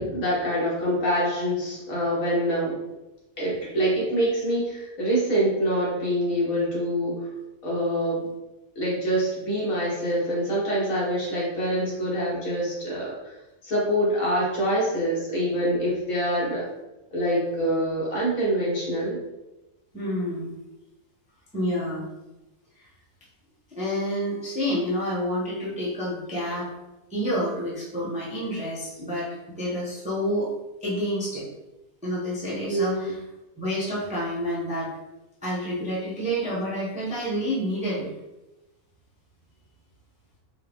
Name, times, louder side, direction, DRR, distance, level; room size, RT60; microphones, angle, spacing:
voice 1, 0.0-2.8 3.4-7.3 7.6-8.3 8.8-13.3 13.6-16.7 17.1-19.2 32.7-33.2, equal, 65° left, -6 dB, 1.8 m, -25 dB
voice 2, 19.9-20.6 21.5-22.1 23.8-26.7 27.1-29.3 29.5-30.5 30.8-31.5 32.0-33.2 33.6-34.9 35.4-38.1, equal, 5° right, -7 dB, 0.7 m, -28 dB
4.6 x 2.1 x 3.4 m, 1.0 s
omnidirectional pair, 1.6 m